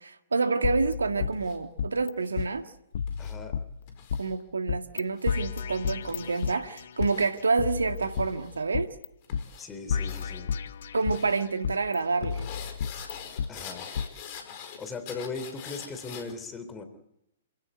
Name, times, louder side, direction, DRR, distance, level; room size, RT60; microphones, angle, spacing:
voice 1, 0.0-2.6 4.2-8.9 10.9-12.5, right 4 dB, 75° right, 1.8 m, -28 dB
sound 1, 0.6-2.1 2.4-2.5 2.9-4.2 4.7-5.0 5.3-7.1 7.6-9.1 9.3-9.4 9.9-11.3 11.6-13.5 14.0-14.1, left 6 dB, 60° left, 0.9 m, -32 dB
sound 2, 1.3-1.6 2.2-2.5 3.1-3.4 3.9-4.3 5.0-5.4 6.1-6.5 7.0-7.3 8.0-8.6 9.2-9.7 10.0-10.3 11.0-11.4 12.2-16.3, left 7 dB, 40° left, 4.9 m, -44 dB
voice 2, 3.2-3.6 9.6-10.5 13.5-13.9 14.8-16.8, left 4 dB, 15° left, 3.4 m, -38 dB
28.5 x 17.0 x 9.4 m
figure-of-eight pair, 120°, 0 cm